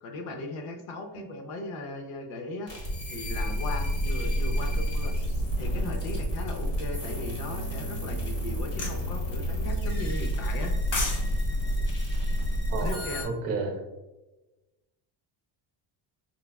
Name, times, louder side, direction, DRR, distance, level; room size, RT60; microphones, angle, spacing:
voice 1, 0.0-2.7 3.1-5.1 5.6-10.7 12.8-13.3, left 2 dB, 85° left, 3 dB, 0.8 m, -37 dB
sound 1, 2.7-13.2, equal, 50° left, 1.4 m, -29 dB
sound 2, 8.8-9.0 10.6-11.2 11.5-11.7, left 2 dB, 70° left, 1.1 m, -30 dB
voice 2, 12.7-13.8, right 3 dB, 30° right, 2 dB, 0.8 m, -32 dB
5.5 x 2.2 x 2.2 m, 1.1 s
cardioid pair, 165°, 49 cm